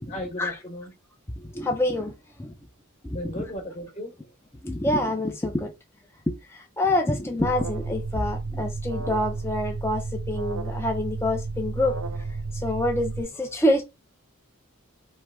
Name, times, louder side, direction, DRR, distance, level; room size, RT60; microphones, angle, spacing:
voice 1, 0.1-0.9 3.1-4.3, left 1 dB, 30° left, 1.0 m, -35 dB
voice 2, 1.5-2.1 2.4-2.5 3.0-3.2 4.6-5.7 6.3-12.0 12.6-13.8, left 1 dB, 10° left, 0.5 m, -26 dB
Alarm, 7.4-13.2, right 3 dB, 65° right, 0.7 m, -32 dB
3.2 x 3.1 x 4.7 m
head